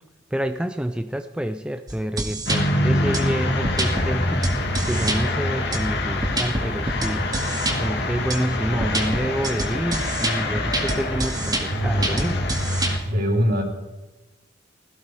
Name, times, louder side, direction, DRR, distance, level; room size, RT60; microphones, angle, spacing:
voice 1, 0.3-7.4 7.7-12.4, equal, 5° right, 8 dB, 0.5 m, -28 dB
sound 1, 1.9-2.6 3.1-3.2 3.6-4.1 4.4-5.2 5.7-7.8 8.3-8.4 8.8-12.9, right 2 dB, 20° right, 2.1 m, -27 dB
sound 2, 2.5-13.0, left 1 dB, 60° left, 2.2 m, -25 dB
voice 2, 13.0-13.6, equal, 55° right, 1 dB, 3.7 m, -22 dB
16.5 x 15.5 x 4.9 m, 1.1 s
head